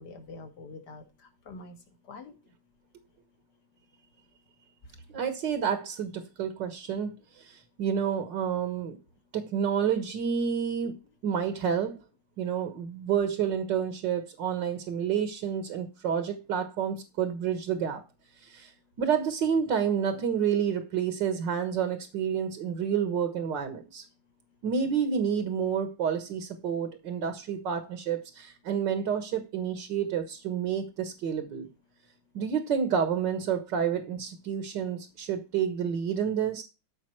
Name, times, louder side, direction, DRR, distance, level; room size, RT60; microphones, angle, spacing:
voice 1, 0.0-1.8 2.0-2.3, left 3 dB, 60° left, 2.6 m, -45 dB
voice 2, 5.1-9.0 9.3-11.0 11.2-12.0 12.4-18.0 18.4-18.7 19.0-24.0 24.6-31.7 32.3-36.6, right 7 dB, 70° right, 2.0 m, -29 dB
13.5 x 5.4 x 4.6 m
omnidirectional pair, 2.1 m